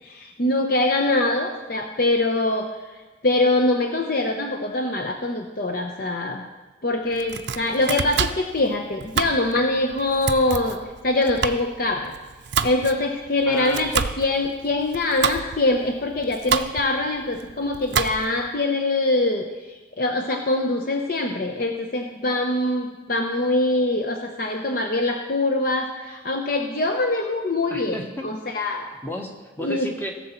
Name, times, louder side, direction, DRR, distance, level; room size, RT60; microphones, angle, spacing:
voice 1, 0.0-2.7 3.2-6.4 6.8-10.8 11.0-12.1 12.6-19.5 20.0-28.9 29.6-29.9, left 2 dB, 50° left, 3 dB, 0.7 m, -23 dB
Domestic sounds home sounds, 7.1-18.5, right 6 dB, 60° right, 0.5 m, -29 dB
voice 2, 13.5-13.9 27.7-28.2 29.0-30.1, equal, 10° left, 2 dB, 1.1 m, -32 dB
16.5 x 6.9 x 4.4 m, 1.2 s
head